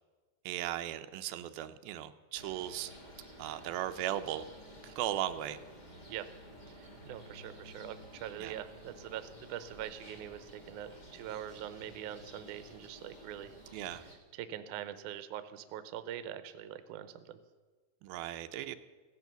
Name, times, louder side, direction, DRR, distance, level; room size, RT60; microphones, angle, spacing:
voice 1, 0.5-2.9 3.4-4.4 4.8-5.6 8.4-8.5 13.7-14.0 18.0-18.8, right 12 dB, 90° right, 9 dB, 2.5 m, -37 dB
sound 1, 2.3-14.1, equal, 40° left, 0.6 m, -53 dB
voice 2, 6.8-13.5 14.3-17.4, right 11 dB, 75° right, 12 dB, 2.0 m, -43 dB
16.0 x 11.0 x 6.8 m, 1.4 s
omnidirectional pair, 4.2 m